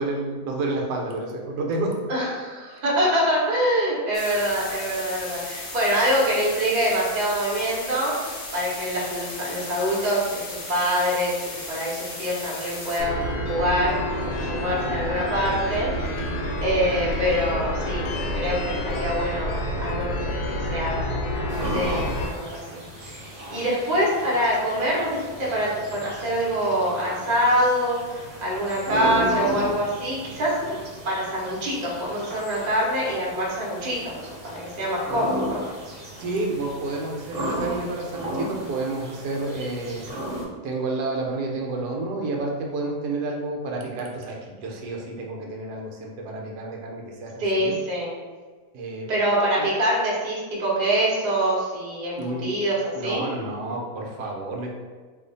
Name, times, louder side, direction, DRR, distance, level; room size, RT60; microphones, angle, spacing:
voice 1, 0.0-2.0 36.2-40.1 40.6-47.8 48.7-49.1 49.6-49.7 52.2-52.5 52.9-54.7, right 2 dB, 75° right, 0 dB, 1.1 m, -30 dB
voice 2, 2.1-8.1 8.5-14.0 14.2-18.0 18.3-20.4 20.7-30.8 31.0-34.2 34.4-35.6 47.4-48.1 49.1-52.8 53.0-53.3, equal, 35° right, -6 dB, 0.7 m, -25 dB
sound 1, 4.1-13.0, left 2 dB, 70° left, 0.4 m, -36 dB
sound 2, 13.0-22.3, equal, 85° left, 1.3 m, -28 dB
sound 3, 21.5-40.4, right 1 dB, 55° right, 1.0 m, -35 dB
2.7 x 2.4 x 3.8 m, 1.4 s
omnidirectional pair, 1.8 m